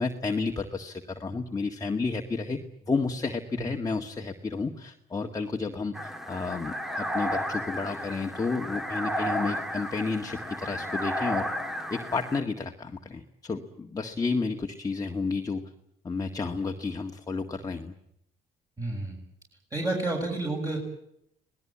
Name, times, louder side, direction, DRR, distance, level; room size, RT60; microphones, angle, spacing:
voice 1, 0.0-2.6 2.9-5.9 6.3-11.5 11.9-15.7 16.0-17.9, left 4 dB, 20° left, 2 dB, 1.8 m, -31 dB
sound 1, 5.9-12.4, equal, ahead, 1.9 m, -33 dB
voice 2, 18.8-19.1 19.7-20.8, right 2 dB, 20° right, -1 dB, 6.8 m, -30 dB
26.0 x 19.0 x 8.6 m, 0.77 s
cardioid pair, 110°, 17 cm